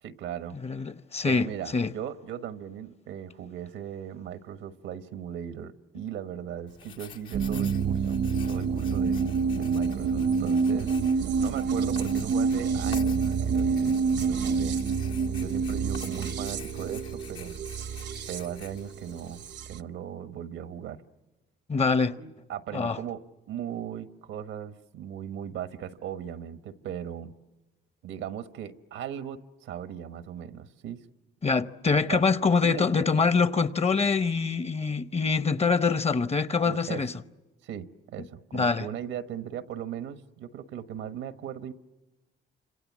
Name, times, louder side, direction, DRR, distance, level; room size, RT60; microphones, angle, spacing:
voice 1, 0.0-0.6 1.2-14.8 15.3-17.6 18.3-21.0 22.2-23.2 23.5-27.3 28.0-31.1 32.0-32.3 32.6-33.1 36.6-37.0 37.6-41.7, right 9 dB, 90° right, 1.3 m, -38 dB
voice 2, 0.5-1.5 1.7-1.9 21.7-22.2 22.7-23.0 31.4-37.1 38.5-38.9, left 4 dB, 30° left, 0.9 m, -25 dB
Writing, 6.7-19.5, left 8 dB, 75° left, 1.9 m, -48 dB
sound 1, 7.3-19.8, right 5 dB, 60° right, 0.8 m, -27 dB
29.5 x 26.5 x 7.4 m
cardioid pair, 90°, 20 cm